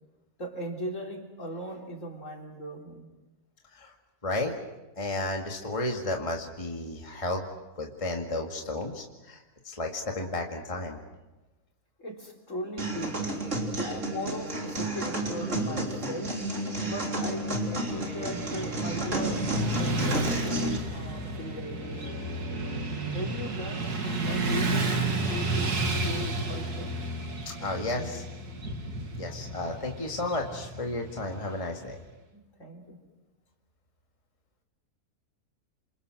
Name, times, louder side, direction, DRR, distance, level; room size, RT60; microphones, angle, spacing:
voice 1, 0.4-3.1 12.0-13.4 13.8-16.4 16.8-22.3 23.1-26.9 27.6-28.3 32.3-33.0, equal, 55° left, 1 dB, 4.1 m, -39 dB
voice 2, 4.2-4.6 5.0-7.5 7.8-11.0 27.5-28.2 29.2-32.0, left 2 dB, 20° left, 1 dB, 2.2 m, -33 dB
sound 1, 12.8-20.8, right 1 dB, 50° right, 3.8 m, -31 dB
Motorcycle / Traffic noise roadway noise, 17.9-32.0, right 2 dB, 90° right, 3.0 m, -32 dB
28.5 x 27.0 x 6.3 m, 1.1 s
omnidirectional pair, 1.6 m